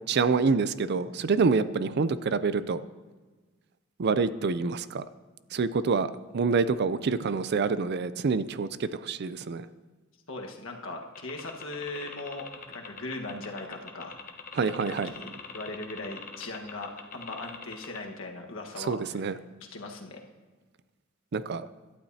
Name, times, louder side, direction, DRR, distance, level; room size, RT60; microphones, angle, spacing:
voice 1, 0.1-2.8 4.0-5.0 5.5-9.7 14.5-15.1 18.9-19.3 21.3-21.7, right 4 dB, 55° right, 14 dB, 0.4 m, -27 dB
voice 2, 10.3-14.2 14.9-19.3 19.6-20.2, left 2 dB, 80° left, 1 dB, 1.5 m, -39 dB
sound 1, 11.2-18.0, left 6 dB, 45° left, 1.0 m, -42 dB
17.0 x 12.0 x 2.8 m, 1.3 s
head